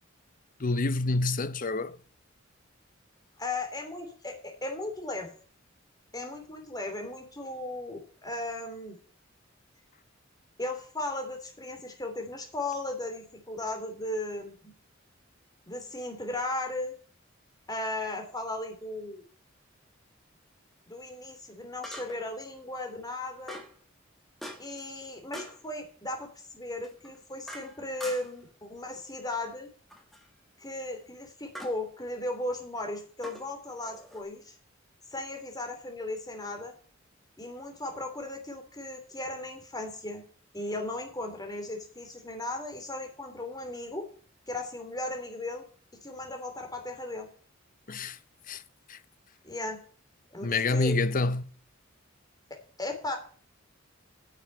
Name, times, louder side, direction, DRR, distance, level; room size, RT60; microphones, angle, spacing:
voice 1, 0.6-2.0 47.9-48.2 48.5-48.6 48.9-49.0 50.4-51.4, left 3 dB, 45° left, 0.8 m, -27 dB
voice 2, 3.4-5.3 6.1-9.0 10.6-14.7 15.7-16.9 17.7-19.2 20.9-23.6 24.6-29.7 30.6-34.5 35.1-36.7 37.4-40.2 40.5-44.0 44.5-45.6 46.0-47.3 49.4-49.8 50.3-51.0 52.8-53.2, left 2 dB, 20° left, 3.1 m, -36 dB
sound 1, 18.2-18.3 21.8-22.4 23.5-23.8 24.4-24.8 25.3-25.6 26.8-28.5 29.9-30.3 31.5-31.8 33.2-34.2, equal, ahead, 2.2 m, -44 dB
9.9 x 7.1 x 7.3 m
head